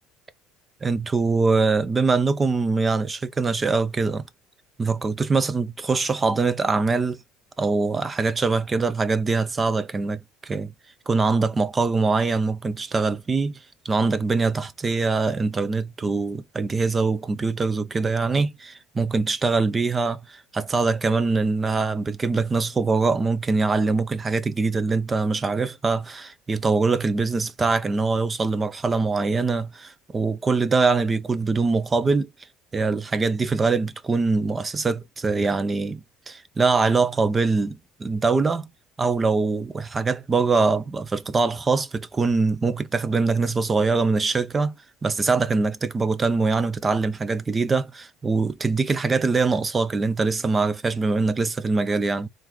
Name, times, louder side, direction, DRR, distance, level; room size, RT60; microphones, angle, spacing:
voice 1, 0.8-4.2 4.8-7.2 7.6-10.7 11.1-13.6 13.8-32.3 32.7-38.7 39.0-44.7 45.0-52.3, right 4 dB, 25° right, 0.6 m, -23 dB
3.8 x 3.0 x 3.6 m
supercardioid pair, 105°, 0 cm